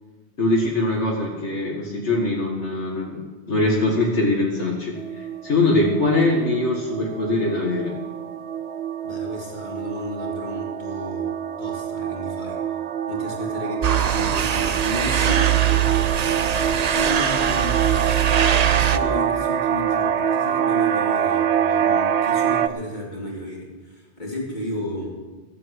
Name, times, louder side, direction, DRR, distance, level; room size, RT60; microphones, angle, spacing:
voice 1, 0.4-7.9, left 2 dB, 80° left, 0 dB, 2.0 m, -22 dB
sound 1, 5.0-22.7, right 8 dB, 70° right, 1.0 m, -25 dB
voice 2, 9.0-11.3 11.6-12.6 13.1-16.0 16.9-17.8 18.6-25.1, equal, 40° left, -3 dB, 3.6 m, -33 dB
sound 2, 13.8-19.0, right 9 dB, 45° right, 0.6 m, -21 dB
15.5 x 7.8 x 8.1 m, 1.3 s
omnidirectional pair, 1.2 m